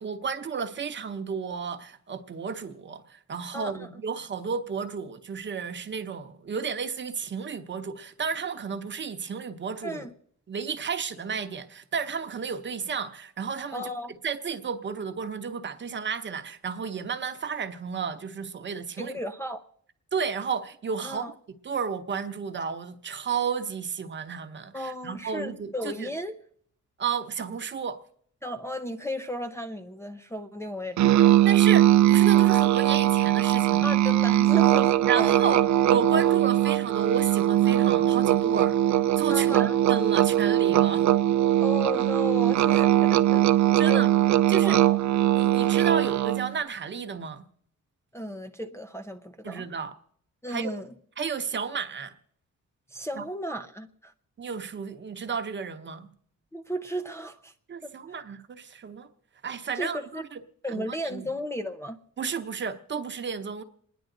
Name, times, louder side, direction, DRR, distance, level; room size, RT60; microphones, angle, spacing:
voice 1, 0.0-10.1 10.5-13.9 14.2-19.2 20.1-21.3 21.6-26.1 27.0-28.0 31.4-34.0 35.1-38.8 39.1-41.1 43.8-44.1 44.5-44.8 45.3-47.4 49.4-49.9 50.5-50.7 51.2-52.1 53.2-53.3 54.4-56.1 57.7-59.1 59.4-60.4 60.7-61.2 62.2-63.6, right 6 dB, 40° right, 0.9 m, -32 dB
voice 2, 3.5-3.9 9.8-10.1 13.7-14.2 19.0-19.7 21.0-21.3 24.7-26.4 28.4-31.4 33.8-35.4 39.3-39.8 41.6-43.4 43.9-44.1 44.6-45.0 48.1-49.7 50.4-50.9 52.9-54.1 56.5-57.5 57.8-57.9 59.7-60.2 60.6-62.0, equal, 10° left, 0.6 m, -34 dB
Musical instrument, 31.0-46.5, right 13 dB, 70° right, 0.5 m, -21 dB
28.0 x 10.5 x 3.9 m
wide cardioid pair, 145°, 30 cm